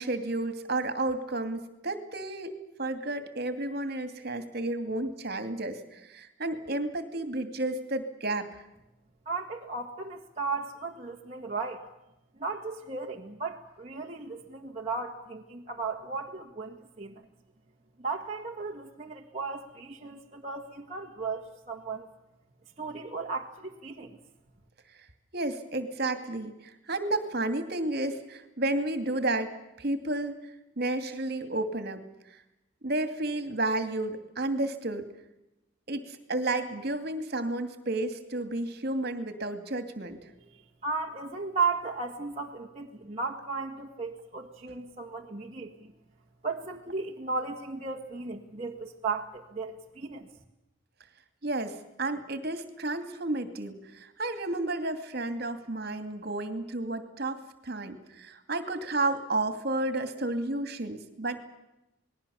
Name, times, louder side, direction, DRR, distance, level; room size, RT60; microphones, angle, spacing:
voice 1, 0.0-8.6 25.3-32.0 32.3-32.4 32.8-35.1 35.9-40.2 51.4-61.4, right 2 dB, 50° right, 8 dB, 2.5 m, -32 dB
voice 2, 9.3-11.8 12.4-17.2 18.0-22.1 22.8-24.2 40.5-45.9 46.4-50.3, right 4 dB, 30° right, -1 dB, 1.8 m, -35 dB
28.5 x 20.5 x 7.1 m, 0.91 s
head